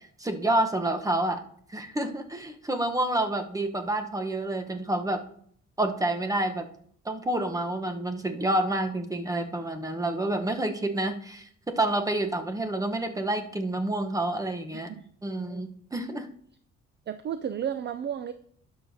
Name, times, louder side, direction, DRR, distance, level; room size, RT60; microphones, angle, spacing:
voice 1, 0.2-1.4 1.7-5.2 5.8-6.7 7.0-14.9 15.2-16.3, right 1 dB, 10° right, 6 dB, 1.0 m, -28 dB
voice 2, 14.7-15.6 17.1-18.3, right 9 dB, 35° right, 12 dB, 0.4 m, -34 dB
12.0 x 6.7 x 2.8 m, 0.63 s
cardioid pair, 90°, 30 cm